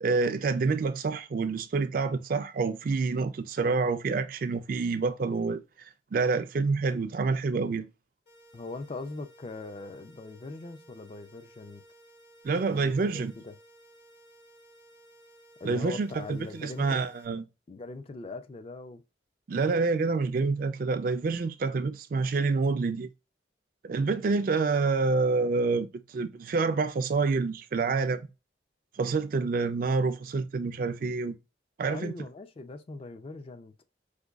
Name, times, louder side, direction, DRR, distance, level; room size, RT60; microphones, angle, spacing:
voice 1, 0.0-5.6 6.1-7.9 12.4-13.3 15.6-17.4 19.5-23.1 23.8-28.3 29.0-31.4 31.8-32.1, right 4 dB, 50° right, 0.3 m, -27 dB
sound 1, 8.3-17.3, right 1 dB, 65° left, 1.3 m, -57 dB
voice 2, 8.5-11.8 12.7-13.5 15.6-17.0 17.7-19.0 31.9-33.7, left 3 dB, 30° left, 0.3 m, -41 dB
4.9 x 2.2 x 2.3 m
head